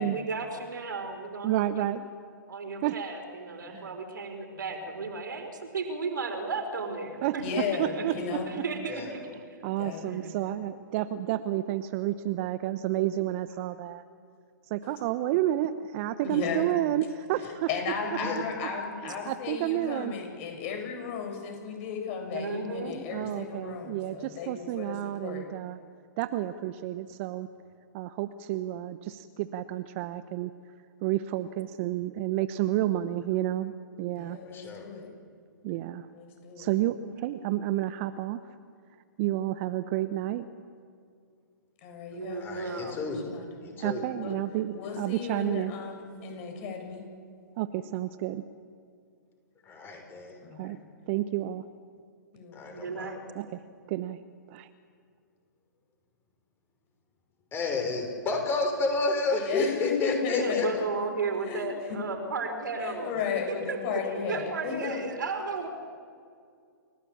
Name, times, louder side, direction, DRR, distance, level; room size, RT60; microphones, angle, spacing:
voice 1, 0.0-1.9 2.5-7.4 7.7-8.1 8.4-9.3 10.0-10.6 18.0-18.4 22.3-23.0 42.1-43.0 52.7-53.2 60.3-65.7, right 4 dB, 70° right, 5 dB, 4.6 m, -34 dB
voice 2, 1.4-2.1 2.8-3.0 3.7-3.9 7.2-7.4 7.8-8.6 9.6-14.0 14.7-17.7 19.0-20.1 23.1-25.8 26.2-27.5 27.9-30.5 31.0-33.7 34.0-34.4 35.6-36.1 36.6-38.4 39.2-40.5 43.8-45.7 47.6-48.4 50.6-50.8 51.1-51.6 53.3-53.6 53.9-54.2 54.5-54.7, right 13 dB, 40° right, 12 dB, 1.0 m, -30 dB
voice 3, 7.4-8.6 9.6-10.1 14.8-14.9 16.2-16.6 17.7-25.5 34.1-35.1 36.1-36.7 41.8-43.7 44.1-44.4 44.7-47.0 50.4-50.7 52.3-52.5 59.3-60.7 61.5-61.6 61.9-62.0 62.8-64.9, left 6 dB, 40° left, 3 dB, 7.9 m, -35 dB
voice 4, 34.5-34.8 42.3-43.2 43.6-44.0 49.7-50.4 52.5-53.1 57.5-60.7 64.8-65.0, left 3 dB, 20° left, 3 dB, 6.1 m, -30 dB
30.0 x 17.0 x 8.8 m, 2.3 s
figure-of-eight pair, 120°, 11 cm